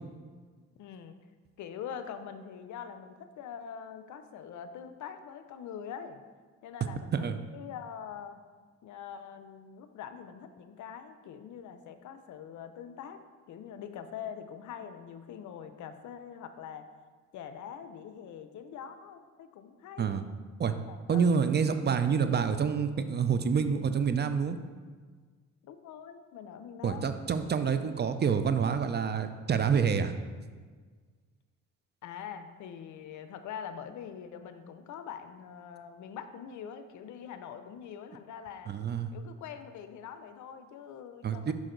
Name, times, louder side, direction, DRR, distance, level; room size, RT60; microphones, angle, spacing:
voice 1, 0.8-1.2 1.6-6.2 6.6-8.4 8.8-13.2 13.5-16.9 17.3-20.1 20.9-21.3 25.6-28.1 32.0-38.7 39.1-41.5, left 8 dB, 75° left, 9 dB, 0.6 m, -44 dB
voice 2, 21.1-24.6 26.8-30.1 38.7-39.1 41.2-41.5, right 6 dB, 35° right, 10 dB, 0.5 m, -27 dB
6.3 x 5.8 x 3.8 m, 1.5 s
cardioid pair, 90°, 30 cm